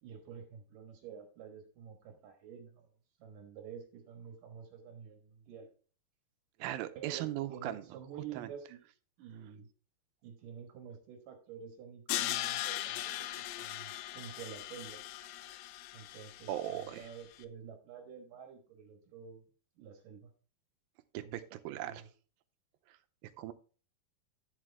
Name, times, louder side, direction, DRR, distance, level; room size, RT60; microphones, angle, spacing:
voice 1, 0.0-2.9 3.2-5.7 7.0-8.8 9.2-9.7 10.2-13.3 13.6-15.0 15.9-19.4 19.8-20.3 21.2-22.0, right 7 dB, 65° right, 4 dB, 2.8 m, -49 dB
voice 2, 6.6-8.0 8.3-8.5 16.5-17.1 21.1-22.0 22.9-23.0 23.2-23.5, right 13 dB, 90° right, 11 dB, 2.5 m, -39 dB
Crash cymbal, 12.1-17.1, left 14 dB, 85° left, 2.4 m, -39 dB
11.0 x 7.5 x 3.4 m, 0.38 s
omnidirectional pair, 4.2 m